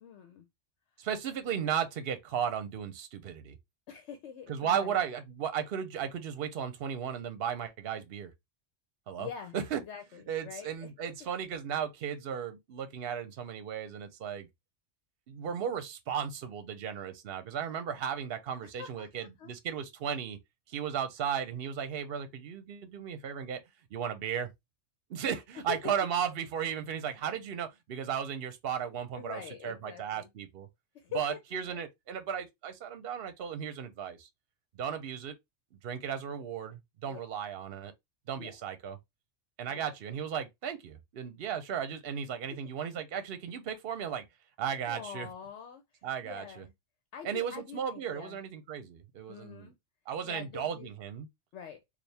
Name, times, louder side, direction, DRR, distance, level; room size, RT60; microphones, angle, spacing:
voice 1, 0.0-0.5 3.9-5.0 9.2-10.9 18.6-19.5 25.3-25.4 25.7-25.9 29.2-30.3 30.9-31.8 37.0-37.2 38.4-38.6 39.7-39.9 42.5-42.6 44.9-46.7 47.1-48.4 49.3-49.7 50.2-50.9 51.5-51.8, left 8 dB, 75° left, 1.0 m, -45 dB
voice 2, 1.0-3.6 4.5-8.3 9.1-9.3 9.5-9.8 10.3-14.5 15.3-20.4 20.7-23.6 23.9-24.5 25.1-30.7 31.1-34.3 34.7-35.3 35.8-37.9 38.3-39.0 39.6-44.2 44.6-45.3 46.0-46.6 47.2-49.7 50.1-51.3, right 8 dB, 60° right, 0.9 m, -35 dB
4.4 x 2.3 x 3.3 m
omnidirectional pair, 1.2 m